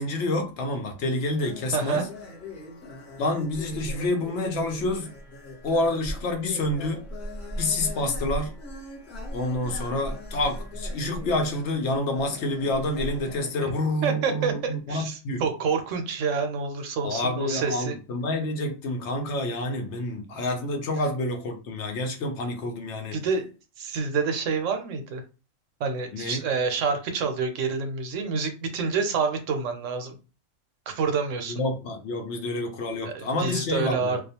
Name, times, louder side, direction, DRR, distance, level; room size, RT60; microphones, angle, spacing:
voice 1, 0.0-2.1 3.2-5.1 5.6-7.0 7.6-8.5 9.3-15.4 17.0-23.2 26.1-26.4 31.5-34.2, left 2 dB, 70° left, 4 dB, 0.9 m, -28 dB
sound 1, 1.3-13.5, left 1 dB, 45° left, 0.9 m, -38 dB
voice 2, 1.7-2.1 13.6-13.7 14.0-17.9 23.1-23.5 23.8-25.2 25.8-30.1 30.9-31.6 33.0-34.2, right 5 dB, 75° right, 6 dB, 0.9 m, -28 dB
2.3 x 2.2 x 2.7 m, 0.33 s
omnidirectional pair, 1.3 m